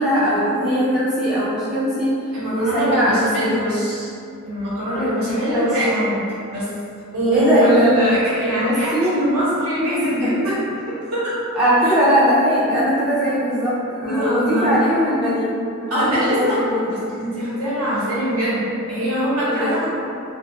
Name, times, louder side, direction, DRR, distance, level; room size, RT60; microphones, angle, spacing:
voice 1, 0.0-2.2 2.5-3.7 5.0-5.7 7.3-8.0 8.6-9.2 9.9-10.4 11.6-16.9 19.4-19.8, equal, 5° right, -10 dB, 0.3 m, -20 dB
voice 2, 2.3-4.1 4.4-6.2 6.5-6.7 7.1-10.6 10.9-11.4 11.8-11.9 14.0-14.8 15.9-19.9, right 1 dB, 75° right, -10 dB, 1.0 m, -22 dB
2.3 x 2.2 x 2.6 m, 2.4 s
head